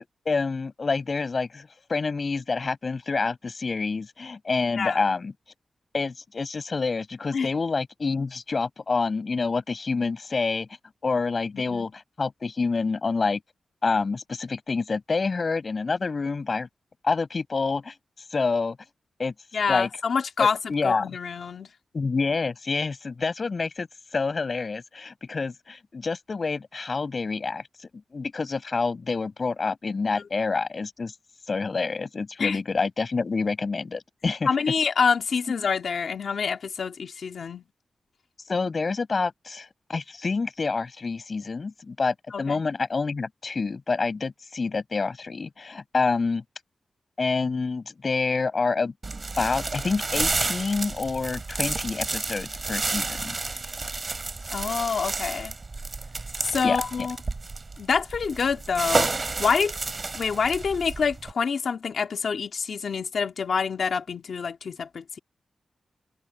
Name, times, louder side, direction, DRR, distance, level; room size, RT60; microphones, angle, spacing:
voice 1, 0.0-5.3 5.9-10.7 11.0-13.4 13.8-16.7 17.0-17.9 18.3-18.8 19.2-19.3 19.7-19.9 20.4-21.1 21.9-23.9 24.1-31.1 31.5-34.5 38.5-46.4 47.2-48.9 49.4-53.4 56.6-56.8, left 4 dB, 40° left, 6.0 m, -27 dB
voice 2, 11.5-11.9 19.5-21.7 32.4-32.6 34.5-37.6 42.3-42.6 54.5-55.5 56.4-57.2 57.8-59.1 59.4-59.7 60.1-65.2, left 5 dB, 65° left, 2.0 m, -26 dB
sound 1, 49.0-61.3, right 3 dB, 30° right, 3.4 m, -31 dB
wide cardioid pair, 150°, 0 cm